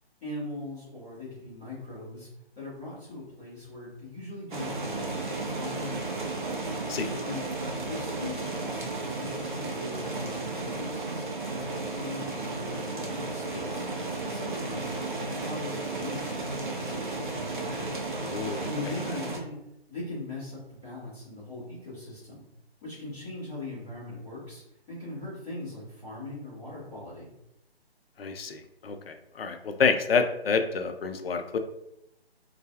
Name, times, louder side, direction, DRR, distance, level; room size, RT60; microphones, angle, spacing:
voice 1, 0.2-2.3 2.5-5.3 5.6-6.4 7.2-7.5 7.8-11.2 11.5-13.9 14.2-14.9 15.2-18.0 18.7-19.6 19.9-22.4 22.8-24.6 24.9-27.3, left 2 dB, ahead, -24 dB, 0.5 m, -40 dB
sound 1, 4.5-19.4, right 2 dB, 50° right, 0.6 m, -33 dB
voice 2, 18.2-18.7 28.2-31.6, left 5 dB, 65° left, 6 dB, 0.4 m, -28 dB
2.3 x 2.2 x 2.7 m, 0.82 s
figure-of-eight pair, 145°, 32 cm